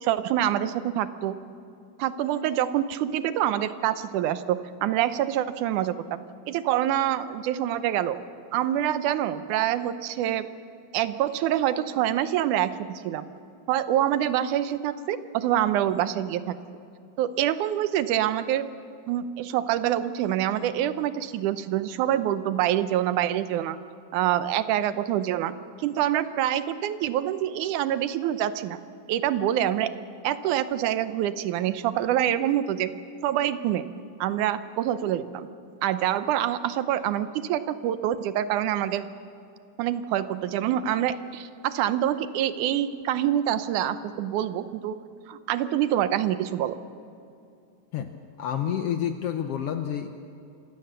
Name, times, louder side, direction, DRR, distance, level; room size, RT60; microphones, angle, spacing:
voice 1, 0.0-1.4 2.0-6.2 6.5-8.2 8.5-10.5 10.9-13.3 13.7-16.6 17.2-18.7 19.1-23.8 24.1-25.5 25.8-28.8 29.1-29.9 30.2-32.9 33.2-33.9 34.2-35.5 35.8-39.1 39.8-45.0 45.3-46.8, right 11 dB, 80° right, 12 dB, 2.2 m, -26 dB
voice 2, 48.4-50.1, left 9 dB, 70° left, 7 dB, 1.4 m, -29 dB
26.5 x 16.5 x 6.8 m, 2.5 s
omnidirectional pair, 3.5 m